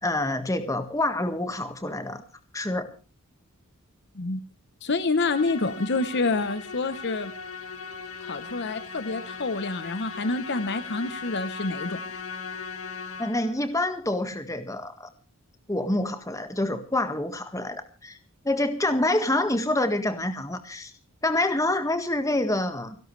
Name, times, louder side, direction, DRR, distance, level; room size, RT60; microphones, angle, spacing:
voice 1, 0.0-2.2 2.5-2.9 13.2-15.1 15.7-18.2 18.4-20.9 21.2-23.0, left 1 dB, 15° left, 8 dB, 1.6 m, -27 dB
voice 2, 4.8-7.3 8.2-12.0, left 3 dB, 50° left, 11 dB, 0.9 m, -27 dB
Musical instrument, 5.1-13.7, left 5 dB, 65° left, 1.8 m, -38 dB
29.5 x 12.0 x 3.3 m, 0.33 s
head